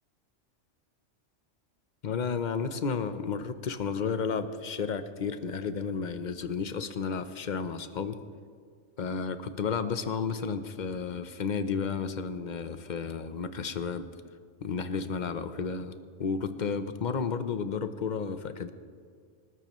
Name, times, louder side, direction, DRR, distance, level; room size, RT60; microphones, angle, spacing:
voice 1, 2.0-8.2 9.0-14.1 14.6-15.9 16.2-18.7, left 5 dB, 45° left, 10 dB, 0.8 m, -32 dB
26.5 x 12.5 x 3.1 m, 2.1 s
omnidirectional pair, 1.2 m